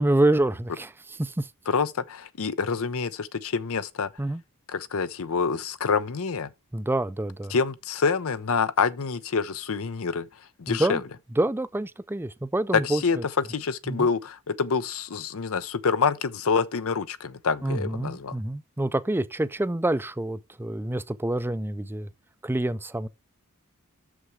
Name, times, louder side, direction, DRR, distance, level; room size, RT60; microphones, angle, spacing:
voice 1, 0.0-1.5 4.2-4.4 6.7-7.5 10.7-11.0 11.4-13.0 13.9-14.1 17.6-22.1 22.4-23.1, right 1 dB, 10° right, 0.4 m, -27 dB
voice 2, 1.7-4.1 4.7-6.5 7.5-10.3 10.6-11.0 12.7-18.4, left 5 dB, 70° left, 0.7 m, -27 dB
6.8 x 6.2 x 4.6 m
head